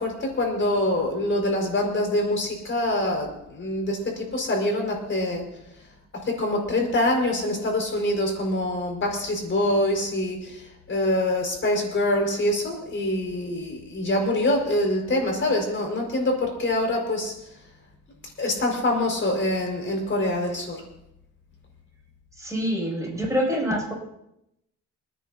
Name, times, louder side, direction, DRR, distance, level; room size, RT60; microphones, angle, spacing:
voice 1, 0.0-5.4 6.1-17.3 18.4-20.8, left 1 dB, 40° left, 1 dB, 5.1 m, -25 dB
voice 2, 22.4-23.9, equal, 10° right, -2 dB, 6.8 m, -26 dB
29.5 x 10.0 x 2.8 m, 0.83 s
cardioid pair, 90°, 30 cm